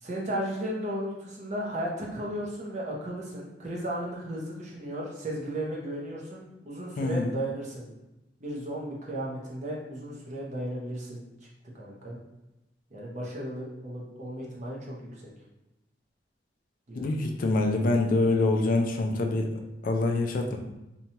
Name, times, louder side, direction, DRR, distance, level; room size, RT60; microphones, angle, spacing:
voice 1, 0.0-7.9 8.4-11.2 11.7-12.2 12.9-15.3 16.9-17.1, right 1 dB, 40° right, -4 dB, 0.7 m, -35 dB
voice 2, 7.0-7.3 16.9-19.5 19.8-20.6, left 2 dB, 50° left, 4 dB, 0.4 m, -25 dB
2.8 x 2.2 x 2.8 m, 0.95 s
head